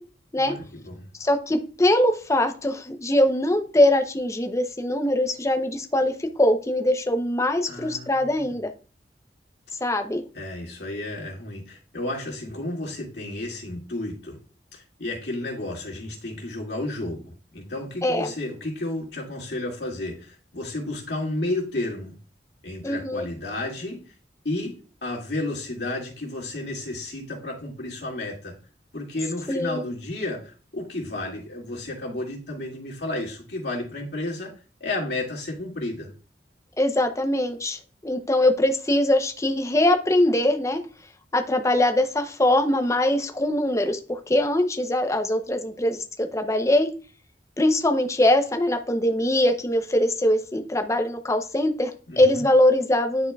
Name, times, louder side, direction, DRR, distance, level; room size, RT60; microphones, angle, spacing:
voice 1, 0.4-1.1 7.7-8.5 10.3-14.4 14.7-22.2 22.6-24.0 24.4-24.7 25.0-28.5 28.9-34.5 34.8-36.1 52.1-52.4, left 2 dB, 75° left, -2 dB, 2.1 m, -32 dB
voice 2, 1.2-8.7 9.8-10.2 18.0-18.3 22.8-23.3 29.5-29.9 36.8-40.8 41.3-46.9 47.6-53.3, left 1 dB, 15° left, 7 dB, 0.6 m, -22 dB
9.8 x 4.3 x 2.3 m, 0.36 s
head